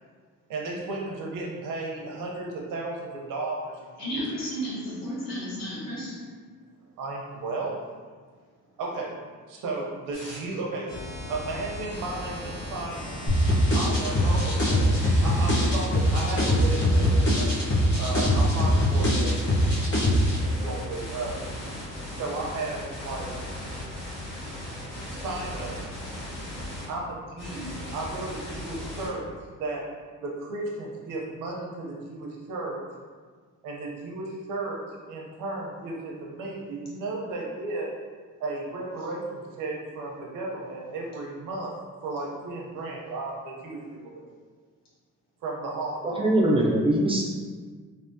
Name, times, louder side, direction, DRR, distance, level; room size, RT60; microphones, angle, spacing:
voice 1, 0.5-4.2 7.0-7.7 8.8-9.2 9.5-10.9 11.3-13.3 13.7-17.5 18.0-19.4 20.4-21.4 22.2-23.3 25.0-25.8 26.9-29.3 29.6-29.9 30.2-32.8 33.6-37.9 38.4-41.7 42.0-44.3 45.4-46.3, right 2 dB, 80° right, -2 dB, 0.7 m, -34 dB
voice 2, 4.0-6.2, equal, 55° left, -8 dB, 1.5 m, -33 dB
sound 1, 10.1-10.4 10.9-26.9 27.4-29.1, left 1 dB, 75° left, 1.2 m, -37 dB
sound 2, 13.3-20.4, equal, 35° left, 1.0 m, -22 dB
voice 3, 46.2-47.3, right 1 dB, 20° right, -3 dB, 0.3 m, -22 dB
3.5 x 2.0 x 2.6 m, 1.5 s
cardioid pair, 130°, 32 cm